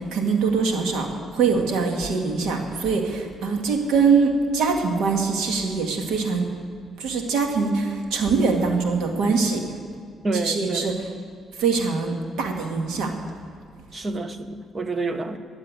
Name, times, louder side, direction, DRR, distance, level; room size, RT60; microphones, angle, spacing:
voice 1, 0.0-6.4 7.0-9.6 10.3-11.1 11.6-13.1, right 4 dB, 90° right, 3 dB, 1.9 m, -23 dB
voice 2, 10.2-11.0 13.9-15.4, right 3 dB, 35° right, 9 dB, 1.1 m, -28 dB
13.5 x 8.3 x 9.3 m, 2.2 s
cardioid pair, 90°, 0 cm